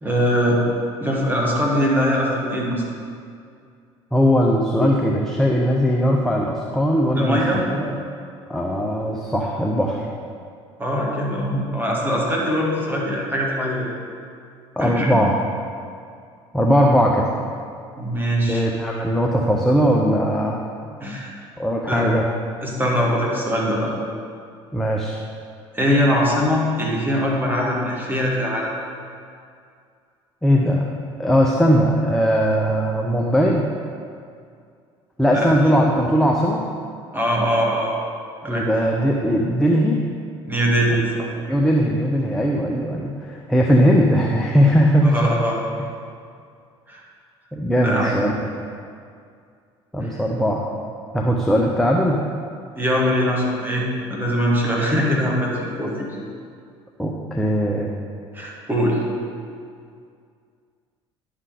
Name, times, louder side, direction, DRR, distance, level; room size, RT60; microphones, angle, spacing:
voice 1, 0.0-0.6 1.0-2.8 7.2-7.6 10.8-13.9 14.8-15.2 18.0-18.6 21.0-21.4 21.9-22.1 22.6-23.9 25.7-28.7 35.3-35.5 37.1-37.9 38.4-38.7 40.5-41.3 45.0-45.6 46.9-47.0 47.8-48.1 50.0-50.1 52.8-56.1 58.3-59.0, equal, 15° right, -3 dB, 2.0 m, -22 dB
voice 2, 4.1-7.4 7.7-8.0 8.5-10.1 14.8-15.3 16.5-17.3 18.5-20.6 21.6-22.2 24.7-25.2 30.4-30.9 31.2-33.6 35.2-36.6 38.5-40.0 41.5-45.1 47.5-48.5 49.9-50.6 51.1-52.2 57.0-57.9, equal, ahead, -1 dB, 0.7 m, -19 dB
11.0 x 3.8 x 4.9 m, 2.3 s
figure-of-eight pair, 60°, 15 cm